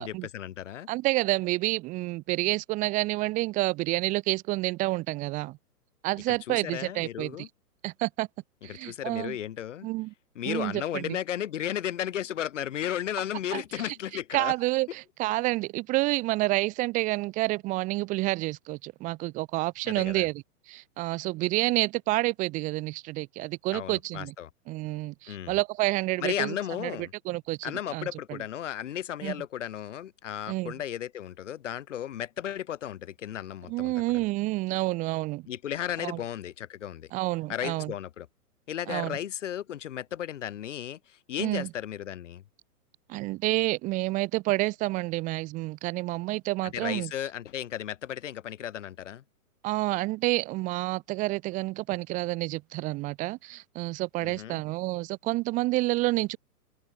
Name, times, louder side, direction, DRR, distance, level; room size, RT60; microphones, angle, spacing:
voice 1, 0.0-0.9 6.3-7.5 8.7-9.9 10.4-14.5 19.8-20.3 23.7-24.5 25.3-25.6 26.2-27.1 27.6-34.2 35.5-37.1 37.5-38.3 38.7-42.4 46.7-49.2 54.2-54.6, left 10 dB, 50° left, 4.1 m, -34 dB
voice 2, 0.9-5.6 6.0-7.5 7.8-8.3 8.6-9.4 9.8-10.1 10.5-11.2 13.5-14.0 14.3-24.3 24.7-26.6 26.8-26.9 27.3-28.4 29.2-29.3 30.5-30.7 33.7-35.4 36.0-36.2 37.1-37.9 38.9-39.2 41.4-41.7 43.1-47.1 49.6-56.4, right 20 dB, 15° right, 2.1 m, -29 dB
hypercardioid pair, 170°, 46 cm